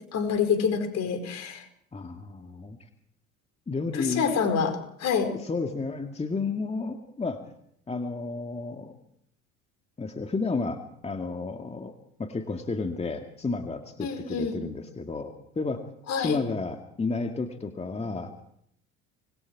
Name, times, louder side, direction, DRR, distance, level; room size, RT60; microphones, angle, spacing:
voice 1, 0.1-1.6 3.9-5.3 14.0-14.6 16.1-16.4, left 6 dB, 55° left, 8 dB, 5.1 m, -27 dB
voice 2, 1.9-2.8 3.7-4.5 5.3-7.4 7.9-9.0 10.0-11.9 12.2-15.8 16.2-18.4, left 3 dB, 20° left, 4 dB, 2.1 m, -32 dB
26.0 x 21.0 x 4.7 m, 0.70 s
hypercardioid pair, 75°, 33 cm